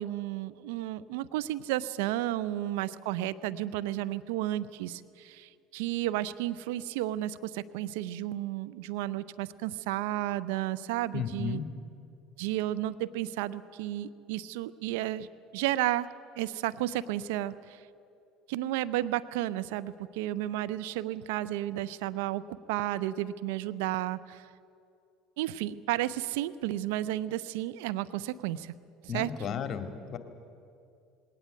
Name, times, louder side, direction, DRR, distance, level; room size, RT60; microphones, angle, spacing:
voice 1, 0.0-11.6 12.4-15.3 15.5-17.8 18.5-24.4 25.4-28.7 29.0-29.3, right 14 dB, 75° right, 15 dB, 0.6 m, -32 dB
voice 2, 11.1-11.7 29.1-30.2, left 7 dB, 40° left, 8 dB, 2.3 m, -34 dB
20.0 x 18.5 x 9.2 m, 2.5 s
hypercardioid pair, 70°, 0 cm